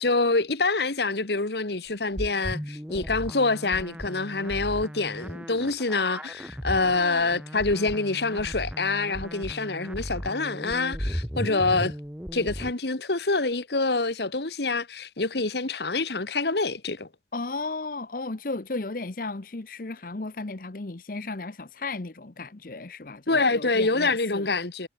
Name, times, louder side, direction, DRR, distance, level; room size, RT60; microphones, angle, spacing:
voice 1, 0.0-11.9 12.3-17.1 23.3-24.9, left 3 dB, 70° left, 1.7 m, -26 dB
sound 1, 2.2-12.7, equal, 5° right, 2.7 m, -36 dB
voice 2, 17.3-24.5, left 3 dB, 50° left, 0.9 m, -35 dB
head